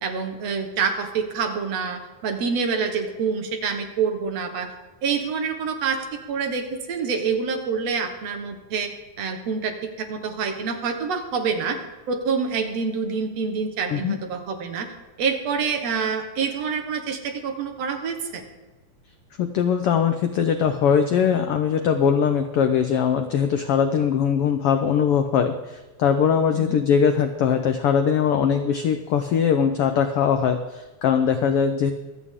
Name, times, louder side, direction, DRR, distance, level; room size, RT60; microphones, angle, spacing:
voice 1, 0.0-4.7 5.0-8.9 9.2-11.8 12.1-14.9 15.2-18.4 26.5-26.8, right 5 dB, 60° right, 5 dB, 2.2 m, -27 dB
voice 2, 19.4-31.9, left 7 dB, 85° left, 7 dB, 1.2 m, -21 dB
25.0 x 8.4 x 3.7 m, 1.2 s
omnidirectional pair, 3.5 m